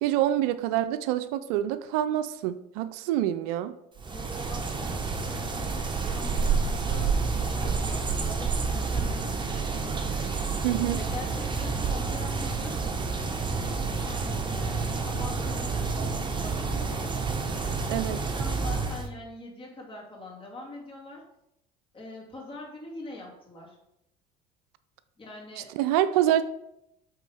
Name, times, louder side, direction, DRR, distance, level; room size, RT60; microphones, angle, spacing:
voice 1, 0.0-3.7 10.6-11.0 17.9-18.2 25.8-26.4, right 12 dB, 70° right, 13 dB, 0.4 m, -26 dB
sound 1, 4.0-19.1, right 4 dB, 25° right, 1.0 m, -29 dB
voice 2, 4.1-10.0 10.9-12.9 13.5-17.2 18.3-21.2 21.9-23.8 25.2-25.7, left 2 dB, 25° left, -2 dB, 2.5 m, -44 dB
8.1 x 3.6 x 3.4 m, 0.83 s
hypercardioid pair, 70°, 20 cm